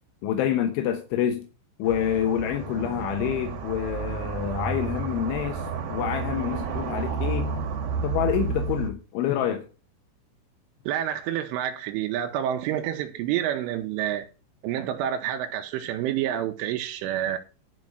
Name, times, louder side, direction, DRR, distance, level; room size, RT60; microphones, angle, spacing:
voice 1, 0.2-1.5 1.8-5.7 5.9-7.5 8.0-9.6, left 10 dB, 80° left, 3.4 m, -27 dB
sound 1, 1.8-8.9, right 5 dB, 65° right, 3.0 m, -31 dB
voice 2, 10.9-14.3 14.6-17.4, right 11 dB, 85° right, 3.4 m, -28 dB
11.5 x 5.4 x 6.2 m
omnidirectional pair, 5.5 m